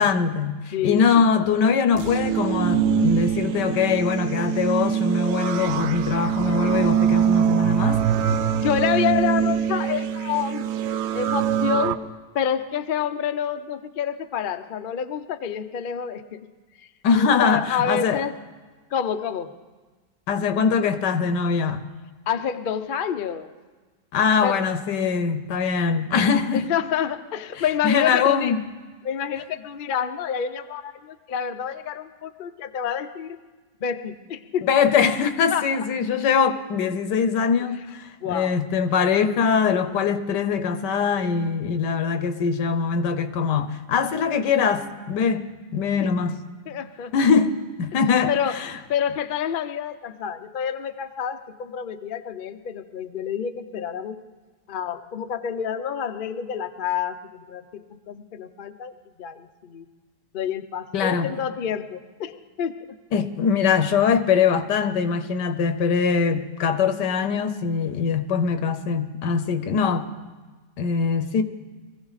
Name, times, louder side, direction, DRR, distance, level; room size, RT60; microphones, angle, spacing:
voice 1, 0.0-8.0 17.0-18.2 20.3-21.9 24.1-26.7 27.6-28.6 34.6-46.4 47.1-48.8 60.9-61.3 63.1-70.1 70.8-71.4, left 6 dB, 85° left, 1.5 m, -22 dB
voice 2, 0.7-1.3 8.6-10.7 11.1-12.0 12.3-16.5 16.8-16.9 17.1-18.3 18.9-19.5 22.3-23.5 24.4-24.6 26.5-28.6 29.0-33.4 33.8-34.7 35.5-35.9 38.2-38.6 46.0-46.1 46.7-47.1 48.3-48.6 48.9-54.2 54.7-59.9 60.3-62.7, left 8 dB, 60° left, 0.5 m, -28 dB
sound 1, 1.9-11.9, right 9 dB, 70° right, 0.6 m, -23 dB
22.5 x 15.0 x 4.1 m
omnidirectional pair, 1.8 m